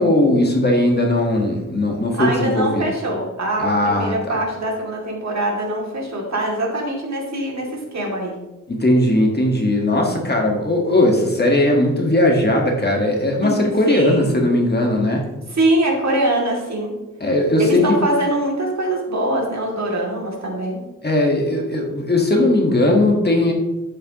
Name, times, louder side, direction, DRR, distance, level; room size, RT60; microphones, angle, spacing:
voice 1, 0.0-2.9 3.6-4.3 8.7-15.3 17.2-18.0 21.0-23.5, left 1 dB, 30° left, 0 dB, 1.4 m, -18 dB
voice 2, 2.2-8.3 13.4-13.5 13.9-14.4 15.5-17.0 17.6-20.8, right 1 dB, 55° right, -2 dB, 2.5 m, -23 dB
11.5 x 8.6 x 2.9 m, 1.1 s
wide cardioid pair, 170°, 32 cm